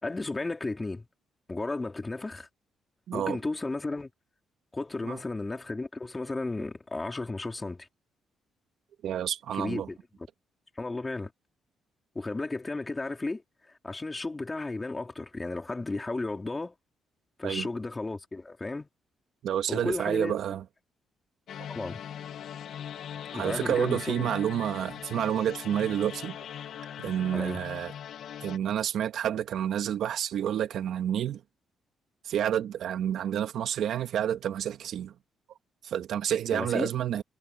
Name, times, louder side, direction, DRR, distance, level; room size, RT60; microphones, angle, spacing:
voice 1, 0.0-1.1 1.5-2.5 3.1-4.1 4.7-7.9 9.5-10.0 10.8-11.3 12.2-16.7 17.4-18.9 19.7-20.4 21.7-22.0 23.3-24.3 27.3-27.6 36.5-36.9, left 2 dB, 20° left, 3.8 m, -34 dB
voice 2, 3.1-3.4 5.0-5.2 9.0-9.9 17.4-17.7 19.4-20.6 23.3-26.4 27.0-27.9 28.4-31.4 32.2-35.1 35.8-37.2, right 10 dB, 70° right, 2.1 m, -29 dB
sound 1, 21.5-28.6, left 9 dB, 70° left, 1.3 m, -40 dB
cardioid pair, 90°, 0 cm